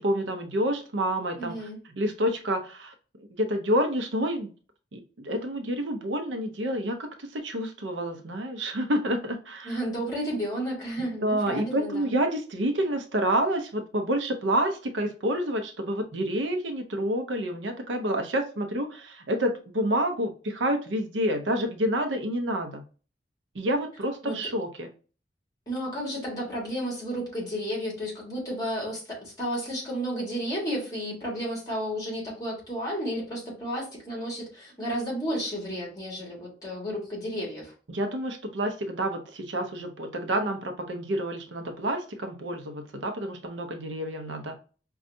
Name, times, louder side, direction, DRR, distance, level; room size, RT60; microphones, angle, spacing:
voice 1, 0.0-1.7 1.9-4.5 4.9-9.8 11.2-22.8 23.5-24.9 37.9-44.6, right 1 dB, 85° right, 6 dB, 0.6 m, -28 dB
voice 2, 1.4-1.8 9.6-12.2 24.2-24.4 25.7-37.7, equal, 20° left, -2 dB, 1.6 m, -32 dB
5.2 x 2.3 x 2.6 m, 0.37 s
head